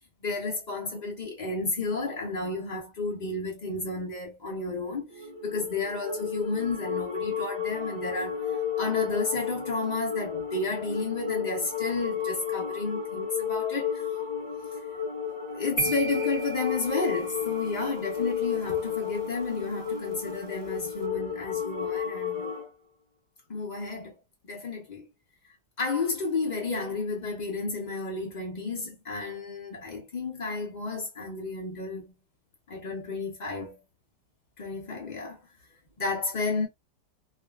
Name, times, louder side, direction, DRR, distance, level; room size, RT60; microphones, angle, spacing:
voice 1, 0.2-14.3 15.5-22.6 23.5-24.2 24.4-25.1 25.8-32.1 32.7-33.8 34.6-35.4 36.0-36.7, left 3 dB, 85° left, 0.4 m, -32 dB
sound 1, 5.1-22.7, left 7 dB, 20° right, 0.9 m, -33 dB
sound 2, 15.8-17.9, right 6 dB, 65° right, 1.0 m, -38 dB
2.7 x 2.4 x 2.2 m
omnidirectional pair, 1.8 m